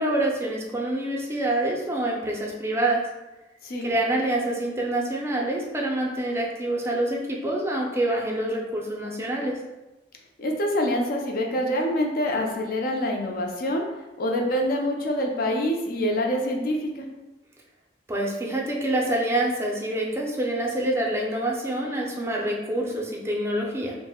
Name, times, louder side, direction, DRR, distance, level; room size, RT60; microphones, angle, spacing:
voice 1, 0.0-3.0 3.8-9.6 18.1-23.9, right 1 dB, 15° right, -1 dB, 0.4 m, -26 dB
voice 2, 10.4-13.9 14.2-17.1, equal, 55° left, 1 dB, 0.4 m, -26 dB
2.5 x 2.0 x 3.5 m, 1.0 s
head